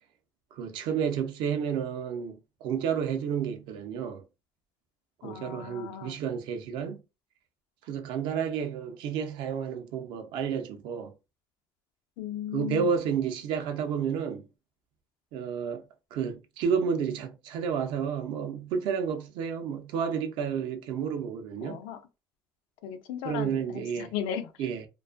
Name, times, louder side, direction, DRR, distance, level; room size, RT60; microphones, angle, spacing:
voice 1, 0.5-4.2 5.2-7.0 7.9-11.1 12.5-14.5 15.3-15.8 16.1-21.8 23.2-24.1 24.6-24.9, right 7 dB, 80° right, 0.5 m, -31 dB
voice 2, 5.2-6.2 12.2-13.0 21.6-22.0 22.8-24.5, left 9 dB, 90° left, 0.4 m, -36 dB
2.4 x 2.3 x 2.3 m
cardioid pair, 120°, 8 cm